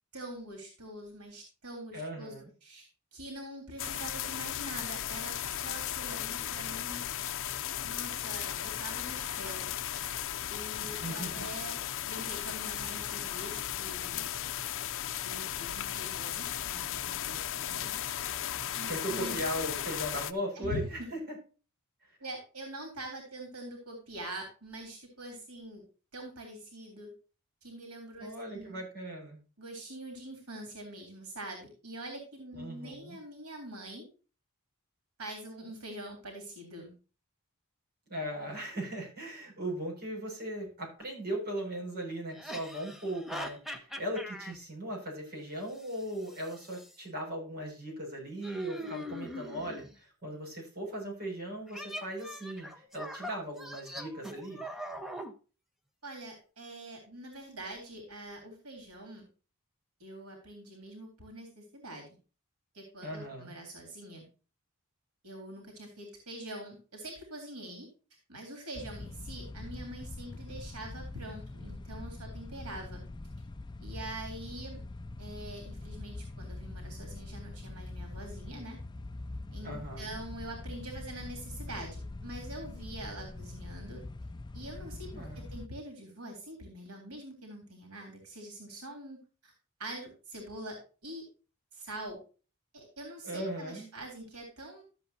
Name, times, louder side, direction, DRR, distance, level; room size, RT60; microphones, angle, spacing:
voice 1, 0.1-2.3 2.6-7.0 7.8-9.7 10.5-14.2 15.2-18.0 18.7-19.4 20.6-21.1 22.2-25.8 26.1-27.1 27.6-28.8 29.6-34.1 35.2-36.9 56.0-59.3 60.0-62.1 62.7-64.3 65.2-67.9 68.3-73.0 73.8-74.8 75.2-78.8 79.5-84.0 84.5-89.5 89.8-90.8 91.0-91.2 91.7-92.2 92.7-94.8, right 1 dB, 90° right, 3 dB, 3.6 m, -44 dB
voice 2, 1.9-2.5 10.8-11.4 18.9-21.4 28.2-29.4 32.6-33.2 38.1-54.6 63.0-63.6 79.6-80.1 85.1-85.6 93.2-93.9, right 1 dB, 45° right, -2 dB, 6.3 m, -38 dB
sound 1, 3.8-20.3, left 11 dB, 60° left, 0.6 m, -36 dB
sound 2, 41.0-41.1 42.3-44.6 45.8-47.0 48.4-49.9 51.7-55.3, equal, ahead, 1.1 m, -42 dB
sound 3, 68.7-85.7, left 2 dB, 20° left, 0.4 m, -43 dB
13.5 x 7.9 x 2.8 m, 0.35 s
head